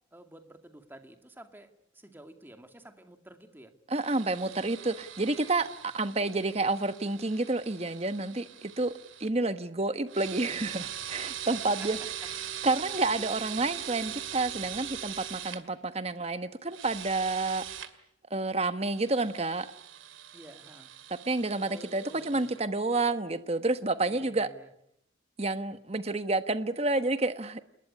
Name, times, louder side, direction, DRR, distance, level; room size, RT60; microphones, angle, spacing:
voice 1, 0.1-3.7 11.8-12.1 20.3-20.9 21.6-22.5 24.1-24.7, right 1 dB, 10° right, 6 dB, 2.3 m, -51 dB
voice 2, 3.9-8.9 9.2-12.0 12.6-17.6 18.3-19.7 21.3-24.5 25.4-27.6, right 2 dB, 30° right, 11 dB, 1.2 m, -29 dB
sound 1, 4.0-9.3 10.1-15.6 16.7-17.9 18.9-22.6, right 10 dB, 80° right, 2.3 m, -41 dB
28.5 x 21.0 x 9.8 m, 0.78 s
head